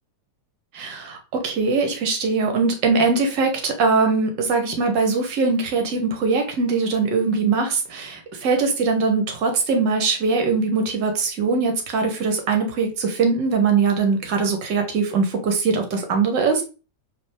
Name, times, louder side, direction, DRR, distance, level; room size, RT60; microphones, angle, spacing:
voice 1, 0.7-16.6, right 4 dB, 45° right, 4 dB, 1.0 m, -21 dB
5.2 x 2.0 x 3.4 m, 0.33 s
figure-of-eight pair, 90°, 0 cm